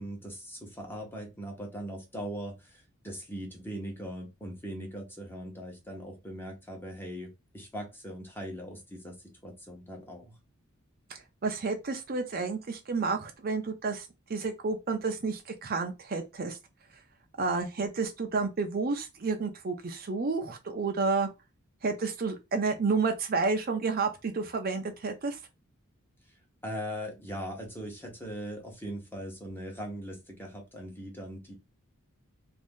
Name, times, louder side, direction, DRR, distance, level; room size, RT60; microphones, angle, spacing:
voice 1, 0.0-9.2 9.4-10.4 26.6-31.5, equal, 10° left, 0.9 m, -40 dB
voice 2, 11.1-16.6 17.4-21.3 21.8-25.4, right 4 dB, 45° right, 0.5 m, -30 dB
2.6 x 2.6 x 3.6 m
head